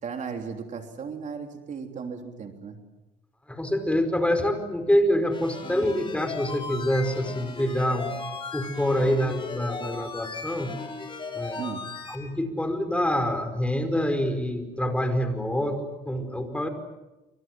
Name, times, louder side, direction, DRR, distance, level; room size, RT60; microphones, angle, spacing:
voice 1, 0.0-2.8 11.6-11.9, right 5 dB, 45° right, 4 dB, 3.4 m, -36 dB
voice 2, 3.5-8.1 8.5-10.7 11.3-11.6 12.1-16.7, equal, 5° left, 8 dB, 5.0 m, -26 dB
sound 1, 5.3-12.2, left 4 dB, 30° left, 5.4 m, -37 dB
28.5 x 26.5 x 7.8 m, 1.0 s
cardioid pair, 110°, 17 cm